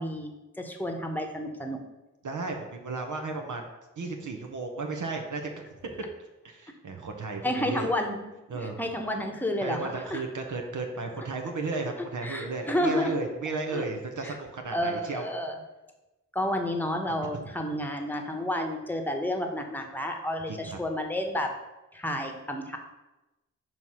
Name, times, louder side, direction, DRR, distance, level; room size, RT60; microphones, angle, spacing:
voice 1, 0.0-1.8 7.4-8.2 8.5-10.2 12.2-13.2 13.7-13.8 14.2-14.4 14.7-15.6 16.3-21.5 21.9-22.8, left 1 dB, 5° left, 4 dB, 1.0 m, -30 dB
voice 2, 2.2-3.7 4.0-5.5 6.4-7.9 8.5-8.8 9.6-15.3 17.3-17.5 20.5-20.8, right 3 dB, 65° right, 3 dB, 0.9 m, -34 dB
5.6 x 3.1 x 5.5 m, 1.0 s
cardioid pair, 45°, 33 cm